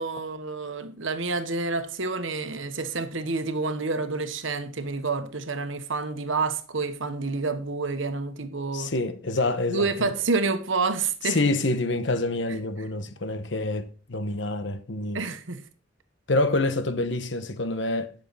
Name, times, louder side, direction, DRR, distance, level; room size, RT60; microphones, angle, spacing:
voice 1, 0.0-8.9 9.7-11.4 15.1-15.6, right 3 dB, 75° right, 1.2 m, -28 dB
voice 2, 8.7-10.1 11.2-15.2 16.3-18.1, left 2 dB, 65° left, 1.0 m, -27 dB
11.5 x 6.6 x 4.1 m
head